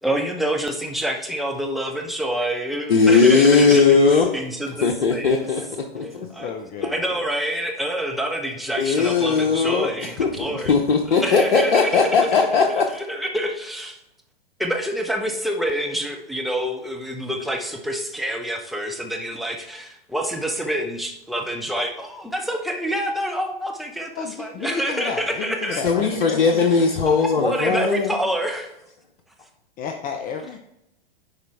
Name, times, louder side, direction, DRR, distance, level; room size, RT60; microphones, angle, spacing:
voice 1, 0.0-5.5 6.0-6.5 6.8-10.7 11.2-12.0 12.4-12.5 12.9-14.0 14.6-25.8 26.6-26.7 27.1-28.7, equal, ahead, 3 dB, 1.0 m, -27 dB
voice 2, 2.9-4.4 4.8-6.3 8.8-12.9 25.7-28.2, left 4 dB, 75° left, 2 dB, 0.9 m, -18 dB
voice 3, 6.3-7.2 24.2-26.8 29.8-30.6, left 6 dB, 30° left, 5 dB, 0.7 m, -32 dB
10.5 x 4.3 x 3.5 m, 0.83 s
hypercardioid pair, 105°, 29 cm